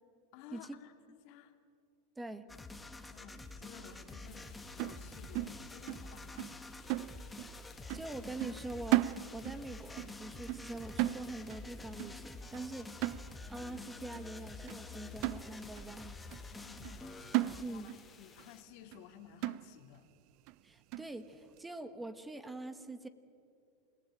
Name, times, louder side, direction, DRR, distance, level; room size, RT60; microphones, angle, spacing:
voice 1, 0.3-1.5 3.1-6.6 16.5-20.1, left 9 dB, 60° left, 8 dB, 2.2 m, -55 dB
sound 1, 2.5-17.6, left 2 dB, 10° left, 1.7 m, -48 dB
sound 2, 4.2-18.6, left 7 dB, 25° left, 2.7 m, -60 dB
sound 3, 4.8-6.1 6.4-6.6 6.9-7.6 7.9-8.1 8.4-9.7 10.0-10.2 10.5-11.7 12.0-12.2 12.5-12.7 13.0-13.7 14.1-14.2 14.7-14.8 15.2-15.9 16.3-16.4 16.8-17.0 17.3-18.1 18.4-18.5 18.9-19.0 19.4-20.0 20.5-20.6 20.9-21.1, right 18 dB, 55° right, 0.5 m, -35 dB
voice 2, 7.9-16.2 17.6-17.9 20.6-23.1, right 2 dB, 10° right, 12 dB, 1.3 m, -44 dB
28.5 x 18.0 x 8.8 m, 2.5 s
hypercardioid pair, 110°, 0 cm